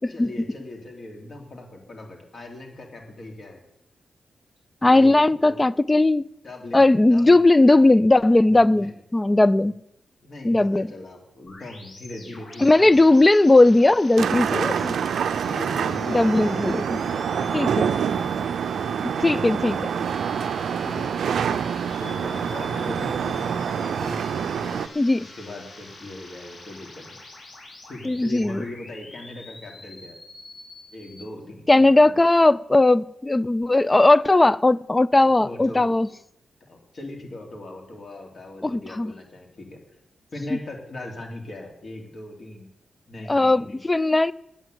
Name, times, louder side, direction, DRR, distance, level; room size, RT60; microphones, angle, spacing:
voice 1, 0.1-3.6 4.9-5.1 5.4-5.7 6.4-7.5 8.4-8.9 10.2-13.0 15.4-18.4 18.8-20.1 20.8-21.1 22.0-24.9 25.2-27.1 27.8-30.2 30.9-31.9 35.3-35.9 36.6-39.8 40.3-42.7 43.1-43.8, left 1 dB, 50° left, 3.2 m, -39 dB
voice 2, 4.8-6.3 6.7-9.7 10.4-10.9 12.6-15.0 16.1-17.0 17.5-17.7 19.2-19.8 25.0-25.3 28.1-28.6 31.7-36.1 38.6-39.1 43.3-44.3, left 2 dB, 20° left, 0.3 m, -18 dB
sound 1, 11.5-31.2, left 2 dB, 65° left, 5.4 m, -45 dB
sound 2, 14.2-24.9, right 7 dB, 80° right, 0.5 m, -26 dB
9.1 x 8.7 x 8.0 m
cardioid pair, 90°, 0 cm